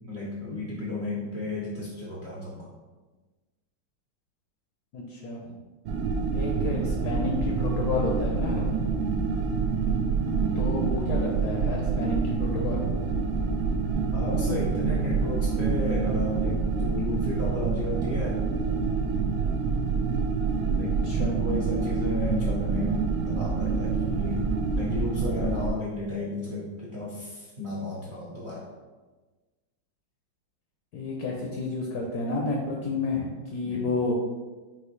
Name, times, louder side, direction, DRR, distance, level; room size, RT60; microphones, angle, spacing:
voice 1, 0.0-2.7 14.1-18.4 20.7-21.0 21.3-23.0 23.3-24.4 24.7-28.7 33.6-33.8, left 2 dB, 60° right, -6 dB, 0.6 m, -33 dB
voice 2, 4.9-5.6 6.3-8.8 10.6-12.8 20.6-20.7 21.0-21.3 30.9-34.2, left 3 dB, 75° left, -1 dB, 0.9 m, -30 dB
sound 1, 5.9-25.7, right 5 dB, 90° right, 1.4 m, -27 dB
5.7 x 2.7 x 3.1 m, 1.3 s
omnidirectional pair, 2.2 m